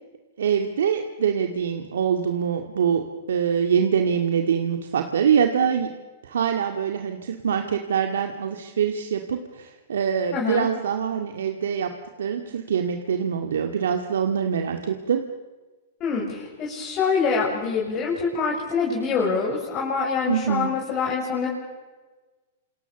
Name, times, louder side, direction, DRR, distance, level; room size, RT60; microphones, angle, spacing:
voice 1, 0.4-5.9 6.2-11.9 12.2-15.2 20.3-20.7, right 7 dB, 85° right, 5 dB, 2.1 m, -24 dB
voice 2, 10.3-10.7 16.0-21.5, left 5 dB, 30° left, -2 dB, 7.0 m, -25 dB
28.0 x 27.0 x 7.0 m, 1.3 s
hypercardioid pair, 130°, 0 cm